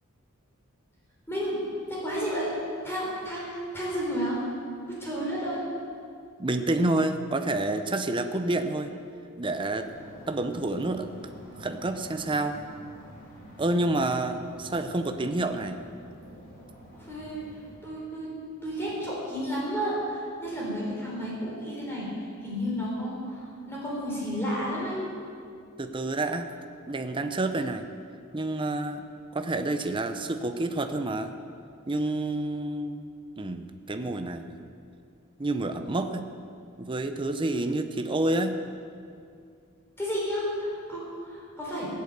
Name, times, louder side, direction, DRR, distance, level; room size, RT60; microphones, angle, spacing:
voice 1, 1.3-1.6 1.9-2.5 2.8-4.4 4.9-5.6 16.9-17.4 17.8-18.3 18.6-25.0 40.0-41.9, equal, 10° left, -6 dB, 3.9 m, -32 dB
voice 2, 6.4-8.9 9.4-9.9 10.3-11.1 11.5-12.6 13.6-15.8 25.8-26.5 26.9-27.8 28.3-29.0 29.3-31.3 31.9-33.1 33.4-34.6 35.4-36.2 36.8-38.6, right 2 dB, 25° right, 7 dB, 0.7 m, -28 dB
sound 1, 9.8-17.8, equal, 45° left, 5.0 m, -48 dB
18.0 x 8.5 x 8.0 m, 2.4 s
head